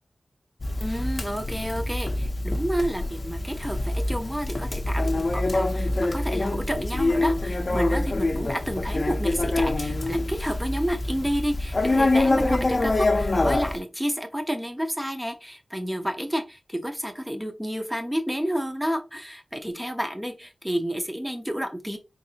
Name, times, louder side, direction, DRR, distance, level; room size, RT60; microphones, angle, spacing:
Conversation, 0.6-13.8, left 2 dB, 40° left, 0.6 m, -25 dB
voice 1, 0.8-22.0, equal, 5° right, 6 dB, 0.7 m, -30 dB
3.9 x 2.6 x 2.7 m, 0.27 s
wide cardioid pair, 85°, 0 cm